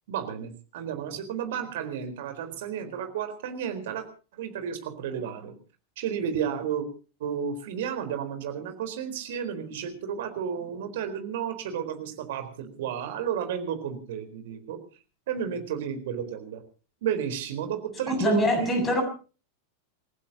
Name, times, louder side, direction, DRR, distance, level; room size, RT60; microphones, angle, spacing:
voice 1, 0.1-4.1 4.3-5.6 6.0-6.9 7.2-14.8 15.3-16.6 17.0-18.8, right 8 dB, 55° right, 4.2 m, -32 dB
voice 2, 18.1-19.0, left 1 dB, 20° left, 7.9 m, -24 dB
29.0 x 16.0 x 2.9 m
figure-of-eight pair, 90°, 0 cm